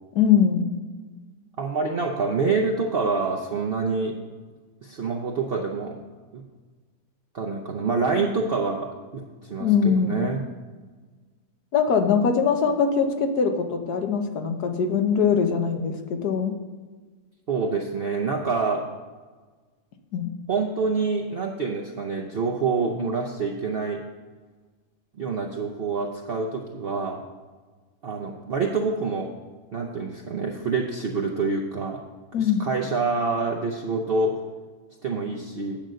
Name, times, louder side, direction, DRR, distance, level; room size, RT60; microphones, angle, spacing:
voice 1, 0.1-0.7 9.6-10.2 11.7-16.5 20.1-20.3 32.3-32.7, left 6 dB, 75° left, 6 dB, 1.5 m, -22 dB
voice 2, 1.6-4.2 4.8-6.0 6.3-6.4 7.3-10.4 17.5-18.9 20.5-24.0 25.2-27.2 28.0-29.3 29.7-32.0 32.4-34.4 35.0-35.8, right 4 dB, 50° right, 1 dB, 0.8 m, -26 dB
9.0 x 5.2 x 7.7 m, 1.4 s
omnidirectional pair, 1.7 m